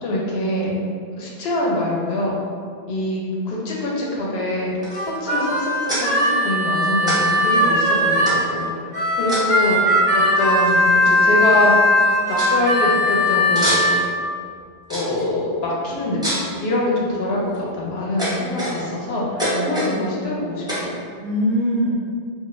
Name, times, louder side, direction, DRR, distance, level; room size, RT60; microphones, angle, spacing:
voice 1, 0.0-0.8 1.2-2.3 2.9-4.7 5.0-9.8 10.1-11.7 12.3-13.9 14.9-21.0, left 1 dB, 70° left, -4 dB, 0.8 m, -24 dB
sound 1, 4.8-5.2 5.9-6.0 7.1-7.2 7.5-7.6 8.2-8.6 9.3-9.7 10.7-10.8 11.0-11.4 11.8-11.9 12.4-12.5 13.5-14.1 14.9-15.2 16.2-16.5 17.2-17.6 18.2-19.0 19.4-19.9 20.7-20.9, equal, 5° right, 0.4 m, -26 dB
Harmonica, 4.9-8.4 8.9-14.0, left 1 dB, 25° left, 0.7 m, -18 dB
voice 2, 19.5-20.2 21.2-21.9, equal, 55° right, -8 dB, 0.5 m, -25 dB
2.3 x 2.3 x 2.9 m, 2.1 s
omnidirectional pair, 1.2 m